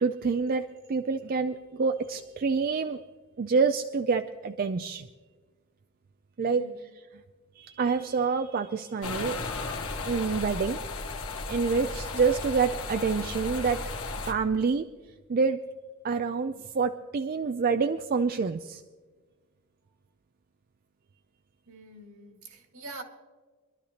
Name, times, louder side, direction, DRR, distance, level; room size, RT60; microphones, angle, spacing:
voice 1, 0.0-3.0 3.4-5.1 6.4-6.6 7.6-9.4 10.1-10.8 11.5-13.8 14.3-14.9 15.3-15.6 16.0-18.8, right 5 dB, 40° right, 0.4 m, -27 dB
voice 2, 6.4-6.8 21.7-23.0, right 2 dB, 70° right, 1.9 m, -45 dB
sound 1, 9.0-14.3, left 3 dB, 70° left, 1.4 m, -35 dB
24.5 x 12.0 x 2.9 m
head